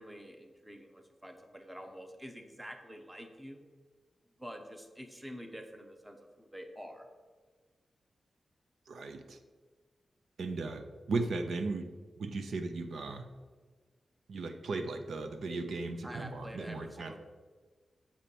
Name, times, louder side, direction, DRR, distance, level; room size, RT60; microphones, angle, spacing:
voice 1, 0.0-3.6 4.4-7.1 16.0-17.2, equal, 5° right, 5 dB, 0.8 m, -47 dB
voice 2, 8.9-9.4 10.4-11.9 12.2-13.3 14.3-17.1, right 3 dB, 75° right, 7 dB, 0.7 m, -36 dB
7.4 x 4.4 x 6.9 m, 1.4 s
wide cardioid pair, 160°, 0 cm